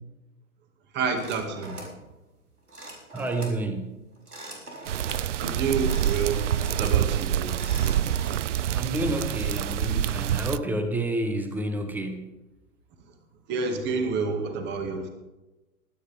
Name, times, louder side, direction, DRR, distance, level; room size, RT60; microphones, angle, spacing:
voice 1, 0.9-1.8 5.4-7.5 13.5-15.1, right 4 dB, 25° right, 6 dB, 2.1 m, -29 dB
sound 1, 1.2-2.0 2.7-3.6 4.2-5.3 5.7-7.0 7.4-8.3, right 2 dB, 85° right, 4.2 m, -42 dB
voice 2, 3.1-4.0 8.7-12.4, right 1 dB, 5° right, 7 dB, 1.1 m, -29 dB
sound 2, 4.9-10.6, right 10 dB, 55° right, 0.5 m, -26 dB
22.5 x 9.7 x 3.5 m, 1.0 s
figure-of-eight pair, 120°, 44 cm